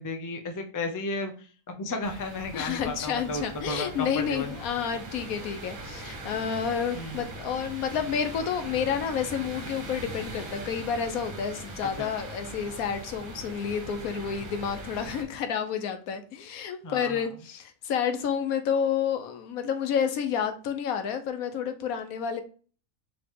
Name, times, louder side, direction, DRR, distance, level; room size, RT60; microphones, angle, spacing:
voice 1, 0.0-1.3 1.7-4.5 6.9-7.2 11.8-12.1 16.8-17.3, left 2 dB, 30° left, 0.3 m, -33 dB
sound 1, 2.0-15.2, right 1 dB, 75° right, 1.6 m, -41 dB
voice 2, 2.5-22.4, left 7 dB, 85° left, 1.2 m, -30 dB
4.8 x 3.0 x 3.6 m
omnidirectional pair, 1.5 m